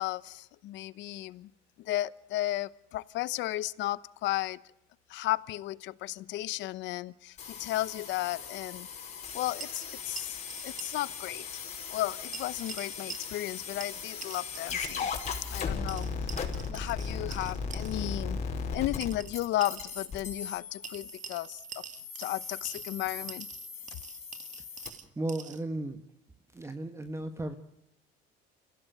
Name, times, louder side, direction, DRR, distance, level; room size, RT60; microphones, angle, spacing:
voice 1, 0.0-1.5 1.8-4.6 5.1-8.9 9.3-11.6 11.9-15.1 15.5-16.3 16.7-18.4 18.7-21.6 22.2-23.5, left 16 dB, 70° left, 18 dB, 1.0 m, -34 dB
sound 1, 7.4-24.9, left 5 dB, 35° left, 5.5 m, -38 dB
sound 2, 9.6-11.1 11.3-11.4 12.3-13.6 13.8-15.0 15.9-18.0 19.0-20.0 20.8-23.0 23.3-25.6, right 7 dB, 40° right, 2.3 m, -46 dB
voice 2, 25.2-26.0 26.5-27.6, right 2 dB, 15° right, 8 dB, 1.5 m, -35 dB
29.5 x 16.5 x 7.8 m, 0.81 s
cardioid pair, 125°, 19 cm